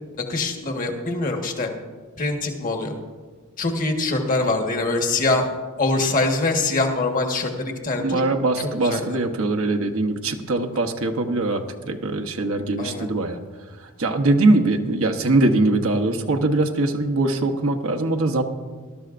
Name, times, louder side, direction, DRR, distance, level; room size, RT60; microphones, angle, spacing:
voice 1, 0.1-1.7 2.2-2.9 3.6-5.5 5.8-8.2 8.6-9.2 12.8-13.1, left 2 dB, 40° left, 3 dB, 1.4 m, -24 dB
voice 2, 8.0-13.4 14.0-18.4, right 2 dB, 65° right, 4 dB, 0.9 m, -22 dB
19.5 x 12.5 x 2.5 m, 1.4 s
head